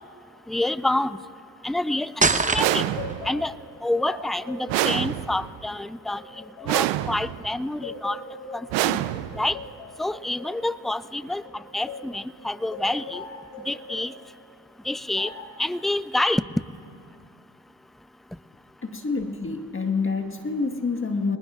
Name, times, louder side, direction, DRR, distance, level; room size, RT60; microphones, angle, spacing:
voice 1, 0.5-1.2 1.6-2.9 3.2-3.5 3.8-6.2 6.6-8.2 8.5-9.0 9.4-9.6 10.0-13.2 13.7-14.1 14.9-15.3 15.6-16.4, left 1 dB, ahead, 16 dB, 0.3 m, -27 dB
sound 1, 2.2-3.1, right 4 dB, 15° right, 1.0 m, -22 dB
sound 2, 2.4-7.4 7.8-12.2 12.7-14.1 15.1-15.6, left 3 dB, 75° left, 2.3 m, -40 dB
sound 3, 2.6-3.4 4.7-5.6 6.7-7.5 8.7-9.6, right 15 dB, 65° right, 0.7 m, -26 dB
voice 2, 18.8-21.4, left 4 dB, 25° left, 5 dB, 1.5 m, -27 dB
26.5 x 19.5 x 2.5 m, 2.5 s
hypercardioid pair, 50°, 46 cm